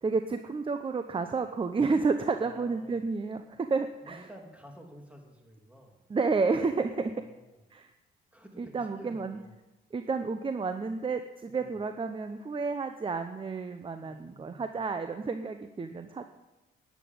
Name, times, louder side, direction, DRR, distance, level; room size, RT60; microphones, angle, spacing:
voice 1, 0.0-3.4 3.7-4.2 6.1-7.1 7.7-7.9 8.6-9.4 9.9-16.2, right 4 dB, 25° right, 8 dB, 0.9 m, -30 dB
voice 2, 2.4-3.1 4.0-6.0 7.1-7.6 8.3-9.6 11.5-11.8 14.0-14.8, equal, 5° right, 1 dB, 3.2 m, -51 dB
11.0 x 8.5 x 9.5 m, 1.0 s
cardioid pair, 90°, 20 cm